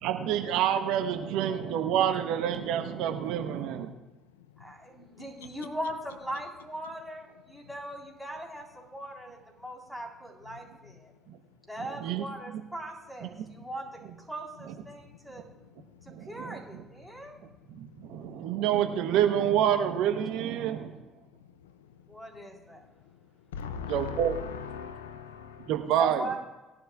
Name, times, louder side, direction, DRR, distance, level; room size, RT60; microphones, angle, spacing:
voice 1, 0.0-3.9 11.3-11.4 11.8-12.2 13.2-13.3 14.7-14.8 16.1-16.8 17.7-20.9 23.9-24.4 25.6-26.4, right 10 dB, 70° right, 6 dB, 0.9 m, -28 dB
voice 2, 4.6-11.1 11.7-14.0 14.3-15.4 16.3-17.4 22.1-22.8 25.9-26.4, right 1 dB, ahead, -1 dB, 3.7 m, -39 dB
voice 3, 23.5-25.7, left 6 dB, 85° left, 12 dB, 0.5 m, -38 dB
20.0 x 11.0 x 2.4 m, 1.1 s
hypercardioid pair, 60°, 0 cm